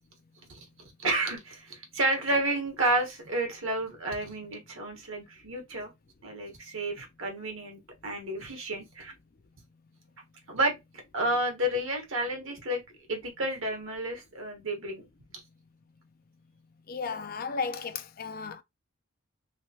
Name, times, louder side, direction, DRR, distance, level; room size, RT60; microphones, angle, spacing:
voice 1, 1.0-5.9 6.2-9.1 10.5-10.8 11.1-12.8 13.1-15.1, right 1 dB, 65° right, 1.3 m, -31 dB
voice 2, 16.9-18.6, left 5 dB, 45° left, 0.4 m, -34 dB
3.3 x 3.2 x 2.8 m
head